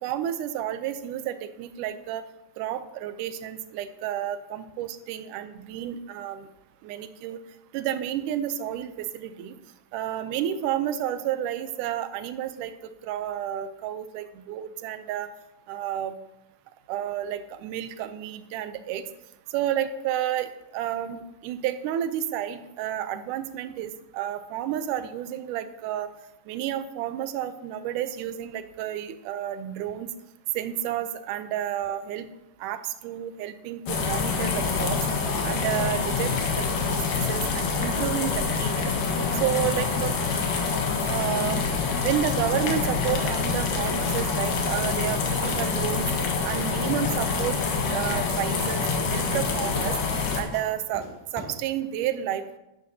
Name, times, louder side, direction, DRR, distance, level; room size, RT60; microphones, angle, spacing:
voice 1, 0.0-2.3 2.6-6.5 6.8-7.4 7.7-9.6 9.9-12.7 13.0-15.3 15.7-16.2 16.9-19.1 19.5-26.1 26.5-30.1 30.6-32.3 32.6-35.0 35.4-38.9 39.3-40.1 41.0-41.6 42.0-46.1 46.4-47.6 47.9-50.0 50.3-51.1 51.3-52.6, right 11 dB, 80° right, 11 dB, 2.1 m, -31 dB
sound 1, 33.9-50.4, left 5 dB, 85° left, 2.9 m, -26 dB
sound 2, 38.4-51.4, equal, 5° right, 2.6 m, -41 dB
11.5 x 11.0 x 2.7 m, 0.94 s
omnidirectional pair, 3.7 m